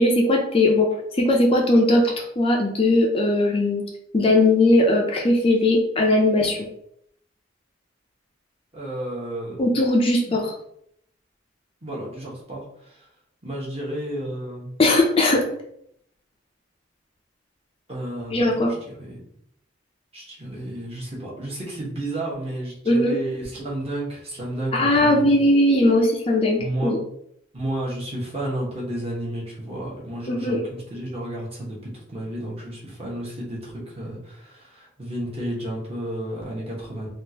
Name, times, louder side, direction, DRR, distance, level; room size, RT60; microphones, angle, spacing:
voice 1, 0.0-3.8 4.1-6.6 9.6-10.5 14.8-15.4 18.3-18.7 22.9-23.2 24.7-27.0 30.3-30.6, left 1 dB, 30° left, 0 dB, 0.4 m, -19 dB
voice 2, 8.7-9.8 10.3-10.4 11.8-13.1 13.4-14.7 17.9-19.2 20.1-25.3 26.6-27.0 27.5-37.1, right 1 dB, 30° right, -4 dB, 1.0 m, -32 dB
3.5 x 2.4 x 2.8 m, 0.72 s
head